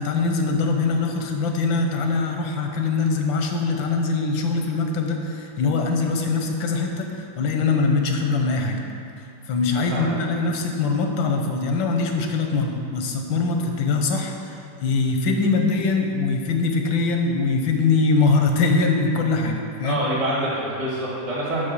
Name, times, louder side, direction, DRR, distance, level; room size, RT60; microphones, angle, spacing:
voice 1, 0.0-8.8 9.2-20.0, left 4 dB, 90° left, 3 dB, 1.6 m, -22 dB
voice 2, 19.8-21.7, right 1 dB, 60° right, -7 dB, 2.4 m, -26 dB
6.1 x 5.6 x 6.7 m, 2.6 s
omnidirectional pair, 2.0 m